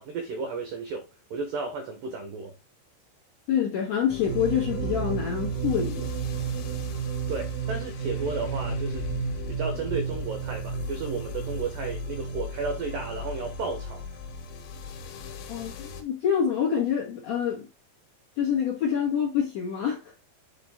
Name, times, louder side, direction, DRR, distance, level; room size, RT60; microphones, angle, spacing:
voice 1, 0.0-2.5 7.3-9.1 9.5-14.0, right 4 dB, 80° right, 2.0 m, -33 dB
voice 2, 3.5-6.1 15.5-17.7 18.4-20.0, left 8 dB, 55° left, 1.9 m, -26 dB
sound 1, 4.1-16.0, left 5 dB, 80° left, 3.4 m, -38 dB
sound 2, 4.3-13.9, right 7 dB, 55° right, 0.9 m, -33 dB
7.8 x 4.0 x 3.5 m
omnidirectional pair, 5.3 m